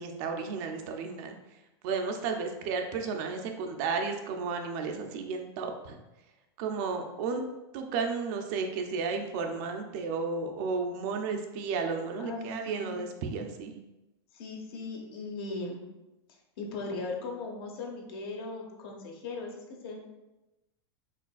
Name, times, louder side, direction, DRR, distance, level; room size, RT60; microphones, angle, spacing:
voice 1, 0.0-1.4 1.8-5.9 6.6-7.4 7.7-13.8, right 4 dB, 40° right, 4 dB, 0.5 m, -33 dB
voice 2, 12.2-13.0 14.3-15.9 16.3-20.1, left 3 dB, 60° left, 1 dB, 1.0 m, -38 dB
4.9 x 3.7 x 2.3 m, 1.0 s
supercardioid pair, 160°, 14 cm